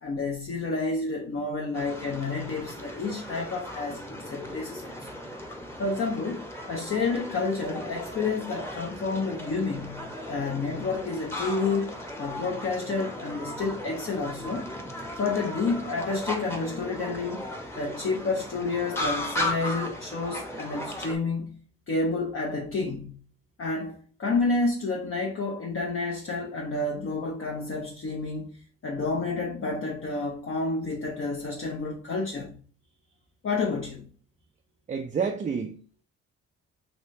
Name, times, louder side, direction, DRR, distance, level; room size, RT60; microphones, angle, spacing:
voice 1, 0.0-5.1 5.8-6.4 6.7-11.9 12.2-14.7 15.2-17.5 17.7-21.6 21.9-23.2 23.6-32.5 33.4-34.1, left 3 dB, 40° left, 0.7 m, -30 dB
sound 1, 1.7-21.2, left 1 dB, 10° left, 0.9 m, -36 dB
voice 2, 34.9-36.0, right 6 dB, 25° right, 0.3 m, -30 dB
3.1 x 2.7 x 3.1 m
supercardioid pair, 60°, 31 cm